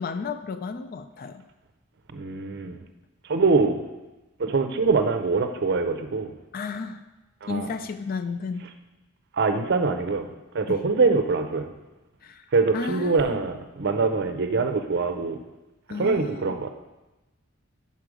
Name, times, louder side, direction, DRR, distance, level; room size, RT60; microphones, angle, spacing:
voice 1, 0.0-1.4 6.5-7.0 7.5-8.7 10.7-10.8 12.2-12.5 12.7-13.4 15.9-16.5, left 4 dB, 45° left, 9 dB, 0.4 m, -33 dB
voice 2, 2.1-2.8 3.3-3.8 4.4-6.3 7.4-7.7 9.3-10.3 10.5-11.7 12.5-15.4 15.9-16.7, right 4 dB, 55° right, 7 dB, 0.5 m, -24 dB
5.6 x 4.9 x 6.1 m, 1.1 s
head